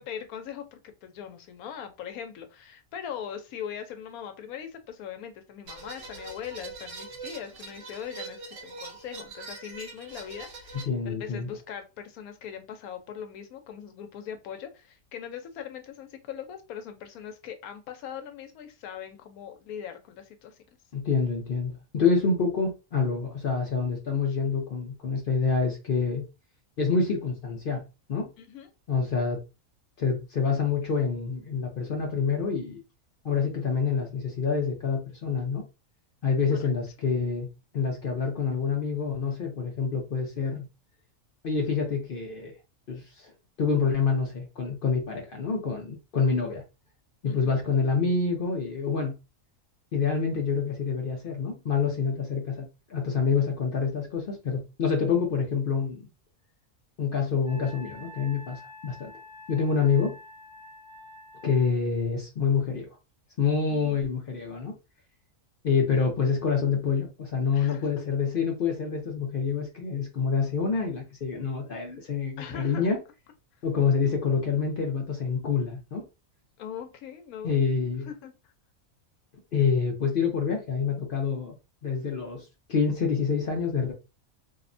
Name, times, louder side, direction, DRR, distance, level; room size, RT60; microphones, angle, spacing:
voice 1, 0.0-20.6 28.4-28.7 36.5-36.7 47.3-47.5 63.7-64.0 67.5-68.0 72.4-72.9 76.6-77.6 78.1-78.3, left 8 dB, 85° left, 1.1 m, -40 dB
sound 1, 5.7-10.9, right 3 dB, 65° right, 1.0 m, -42 dB
voice 2, 10.7-11.5 20.9-26.3 26.8-28.3 28.9-29.4 30.0-32.8 33.2-35.6 36.2-37.5 37.7-40.7 41.4-42.5 42.9-43.3 43.6-46.6 47.2-49.1 49.9-56.1 57.0-59.1 59.5-60.2 61.4-62.9 63.4-64.8 65.6-73.0 73.6-76.0 77.4-78.1 79.5-81.5 81.8-83.9, left 5 dB, 60° left, 0.6 m, -27 dB
Wind instrument woodwind instrument, 57.4-61.7, left 1 dB, 20° left, 0.8 m, -47 dB
2.7 x 2.1 x 2.5 m
omnidirectional pair, 1.5 m